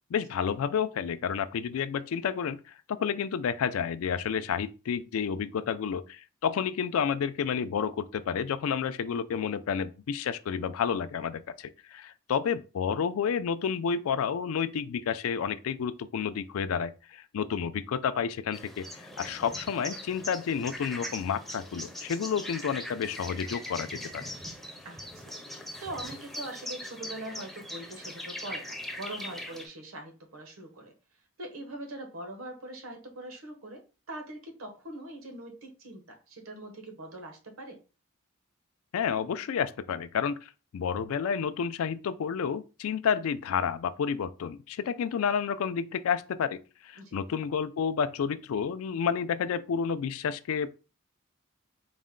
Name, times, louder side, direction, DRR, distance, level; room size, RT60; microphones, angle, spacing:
voice 1, 0.1-24.2 38.9-50.7, left 7 dB, 80° left, 0.3 m, -30 dB
sound 1, 18.5-29.7, left 1 dB, ahead, 0.4 m, -41 dB
voice 2, 24.8-25.4 25.8-30.9 31.4-37.8 47.0-47.2, right 1 dB, 80° right, 1.0 m, -42 dB
4.1 x 2.1 x 3.7 m
head